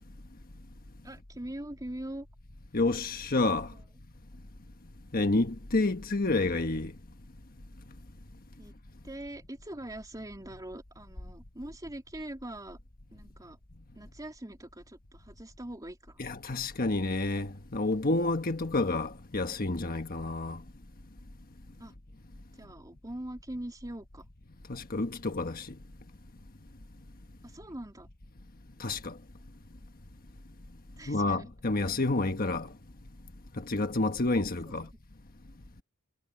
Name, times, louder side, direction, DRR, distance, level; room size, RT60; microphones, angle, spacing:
voice 1, 1.0-2.3 3.7-3.8 8.6-8.7 9.0-12.8 13.1-13.6 13.9-16.3 21.8-21.9 22.6-24.2 27.4-28.1 31.0-31.5 34.6-34.9, right 1 dB, 15° right, 3.1 m, -42 dB
voice 2, 2.7-3.7 5.1-6.9 16.2-20.6 24.7-25.7 28.8-29.2 31.1-32.7 33.6-34.9, left 2 dB, 40° left, 1.3 m, -29 dB
head